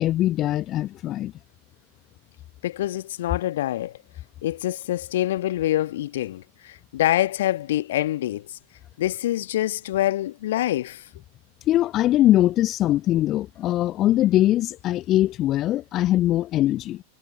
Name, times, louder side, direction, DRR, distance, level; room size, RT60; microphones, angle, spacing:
voice 1, 0.0-1.3 11.7-17.0, left 14 dB, 35° left, 0.8 m, -21 dB
voice 2, 2.6-3.9 4.4-6.4 6.9-8.4 9.0-11.0, left 14 dB, 55° left, 1.2 m, -25 dB
figure-of-eight pair, 90°, 0 cm